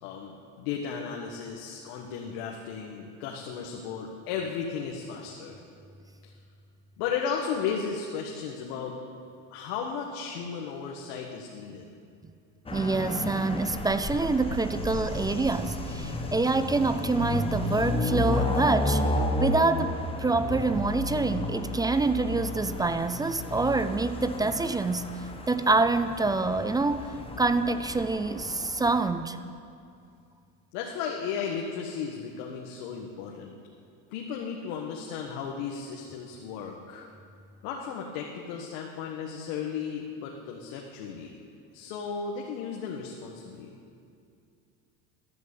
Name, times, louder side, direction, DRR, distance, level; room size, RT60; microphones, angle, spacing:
voice 1, 0.0-5.6 6.2-6.3 7.0-9.0 9.5-11.9 30.7-33.5 34.1-37.1 37.6-41.4 41.7-43.7, left 6 dB, 70° left, 0 dB, 1.7 m, -35 dB
sound 1, 12.7-29.0, left 2 dB, 15° left, 1.4 m, -32 dB
voice 2, 12.7-19.0 19.4-25.1 25.5-29.4, right 3 dB, 10° right, 11 dB, 0.3 m, -26 dB
14.0 x 11.0 x 8.4 m, 2.4 s
supercardioid pair, 125°, 39 cm